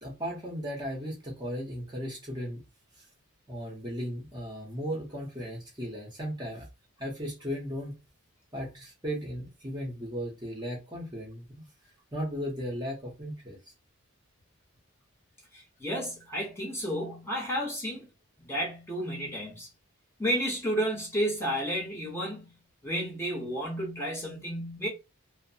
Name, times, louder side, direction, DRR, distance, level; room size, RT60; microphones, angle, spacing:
voice 1, 0.0-2.6 3.5-6.7 7.0-7.9 8.5-11.7 12.1-13.6, equal, 20° right, 0.8 m, -36 dB
voice 2, 15.5-18.1 18.4-19.7 20.2-22.5 22.8-24.9, equal, 10° left, 0.9 m, -32 dB
2.8 x 2.0 x 2.7 m
head